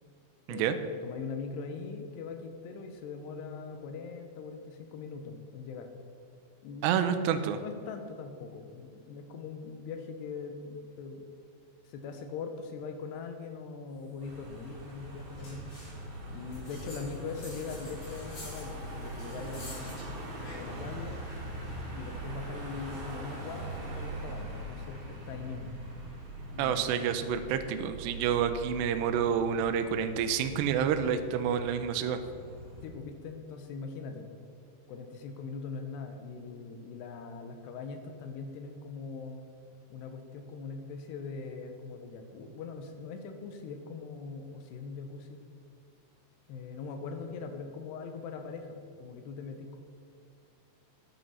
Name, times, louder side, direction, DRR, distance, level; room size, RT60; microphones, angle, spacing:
voice 1, 0.5-5.9 6.6-7.0 7.6-11.3 11.8-15.7 16.3-20.0 20.5-21.2 21.9-25.7 26.5-26.9 29.2-29.4 32.8-34.4 34.9-39.4 39.9-45.4 46.5-49.8, left 5 dB, 75° left, 6 dB, 3.0 m, -41 dB
voice 2, 6.8-7.6 26.6-32.2, right 8 dB, 80° right, 8 dB, 2.6 m, -28 dB
Car passing by / Engine, 14.2-32.9, right 1 dB, 55° right, 4.2 m, -42 dB
sound 1, 15.4-16.0 16.5-20.9 21.2-23.0, left 1 dB, 40° left, 4.3 m, -50 dB
9.8 x 9.4 x 5.7 m, 2.3 s
omnidirectional pair, 5.1 m